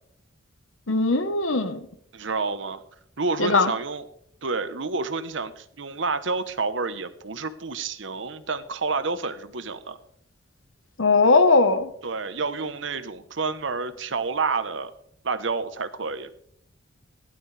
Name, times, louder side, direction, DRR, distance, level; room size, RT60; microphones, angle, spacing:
voice 1, 0.9-1.9 3.4-3.7 11.0-11.9, left 3 dB, 80° left, 10 dB, 1.2 m, -19 dB
voice 2, 2.1-2.8 3.2-4.1 4.4-10.0 12.0-14.9 15.2-16.3, right 4 dB, 70° right, 12 dB, 1.0 m, -29 dB
17.0 x 12.0 x 3.4 m, 0.69 s
head